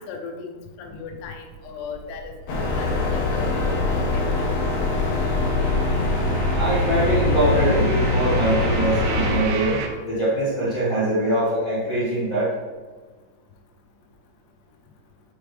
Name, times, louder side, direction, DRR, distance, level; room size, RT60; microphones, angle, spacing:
voice 1, 0.0-2.3 2.7-4.3, left 5 dB, 85° left, 3 dB, 2.9 m, -37 dB
sound 1, 0.8-3.2 3.5-9.9, right 4 dB, 80° right, 2.7 m, -35 dB
sound 2, 2.5-9.4, left 2 dB, 70° left, 1.6 m, -23 dB
voice 2, 6.5-12.5, right 1 dB, 50° left, -10 dB, 1.0 m, -23 dB
8.0 x 5.0 x 3.3 m, 1.3 s
omnidirectional pair, 4.7 m